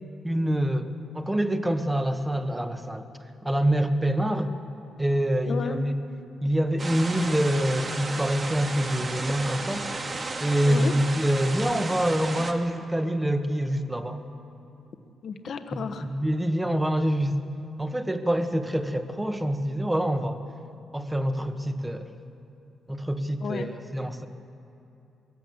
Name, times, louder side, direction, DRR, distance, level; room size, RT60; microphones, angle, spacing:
voice 1, 0.2-3.1 3.4-4.6 5.0-6.0 6.4-9.8 10.4-14.2 16.1-17.4 17.8-20.4 20.9-22.1 22.9-24.3, equal, 10° right, 7 dB, 1.6 m, -26 dB
voice 2, 5.5-5.8 10.6-11.0 15.2-16.1 23.4-23.7, left 5 dB, 65° left, 7 dB, 1.3 m, -32 dB
sound 1, 6.8-12.5, right 3 dB, 40° right, 2.1 m, -33 dB
22.0 x 16.5 x 8.0 m, 2.8 s
cardioid pair, 75°, 0 cm